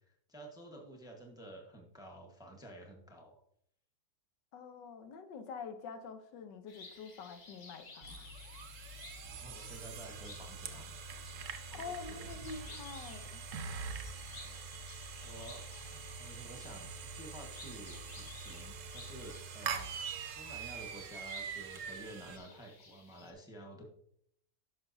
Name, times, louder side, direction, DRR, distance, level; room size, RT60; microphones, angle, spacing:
voice 1, 0.0-3.4 9.2-10.9 11.7-12.7 13.5-13.8 14.3-14.6 15.2-15.7 15.9-19.9 20.3-23.8, right 1 dB, 5° right, 0.9 m, -51 dB
voice 2, 4.5-8.3 11.7-13.4, left 5 dB, 90° left, 1.4 m, -46 dB
sound 1, 6.7-23.3, left 3 dB, 55° left, 1.6 m, -56 dB
sound 2, 8.0-22.4, right 5 dB, 60° right, 0.9 m, -44 dB
10.5 x 6.1 x 2.6 m
omnidirectional pair, 1.8 m